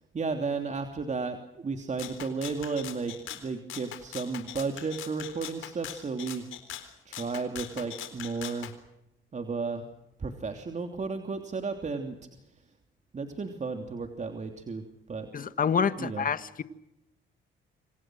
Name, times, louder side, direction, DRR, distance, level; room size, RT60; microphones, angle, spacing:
voice 1, 0.1-6.5 7.0-8.7 9.3-9.9 10.2-12.2 13.1-14.8 15.1-15.3 16.0-16.2, right 4 dB, 35° right, 5 dB, 3.1 m, -33 dB
Rattle (instrument), 2.0-8.7, left 12 dB, 85° left, 4.0 m, -42 dB
voice 2, 15.3-16.6, left 6 dB, 45° left, 12 dB, 1.7 m, -27 dB
27.5 x 26.5 x 6.4 m, 0.87 s
cardioid pair, 90°, 20 cm